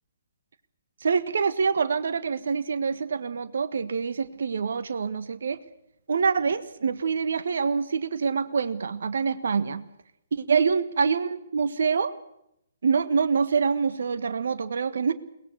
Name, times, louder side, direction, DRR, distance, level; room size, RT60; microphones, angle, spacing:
voice 1, 1.0-5.6 6.1-9.9 10.3-12.1 12.8-15.1, right 5 dB, 55° right, 13 dB, 1.4 m, -25 dB
22.5 x 20.0 x 8.1 m, 0.79 s
figure-of-eight pair, 130°, 0 cm